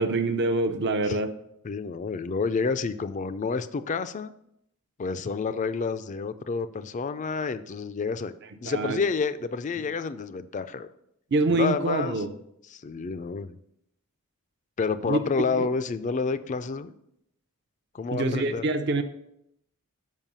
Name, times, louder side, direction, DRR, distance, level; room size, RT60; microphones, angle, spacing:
voice 1, 0.0-1.3 8.6-9.0 11.3-12.4 15.1-15.2 15.6-15.7 18.1-19.0, right 2 dB, 50° right, 8 dB, 0.6 m, -25 dB
voice 2, 1.6-4.3 5.0-8.3 8.6-10.9 11.5-12.2 12.7-13.6 14.8-16.9 17.9-18.6, left 4 dB, 35° left, 13 dB, 0.4 m, -29 dB
7.3 x 5.3 x 5.4 m, 0.77 s
head